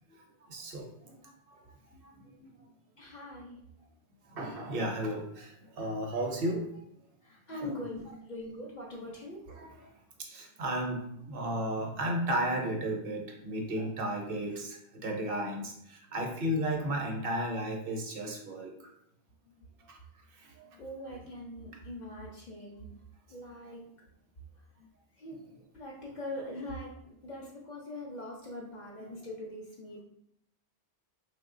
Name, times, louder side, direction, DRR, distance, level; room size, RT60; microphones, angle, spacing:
voice 1, 0.5-1.2 1.5-1.6 1.9-2.5 4.3-6.7 7.6-7.7 9.5-9.7 10.2-18.7 19.9-20.0 20.6-20.7, right 1 dB, 65° right, 1 dB, 0.7 m, -34 dB
voice 2, 3.0-3.6 7.2-9.5 20.8-22.9 23.3-23.8 25.2-25.4 25.7-26.9 27.2-30.0, left 1 dB, 55° left, -2 dB, 0.6 m, -42 dB
3.1 x 2.1 x 3.6 m, 0.74 s
omnidirectional pair, 1.1 m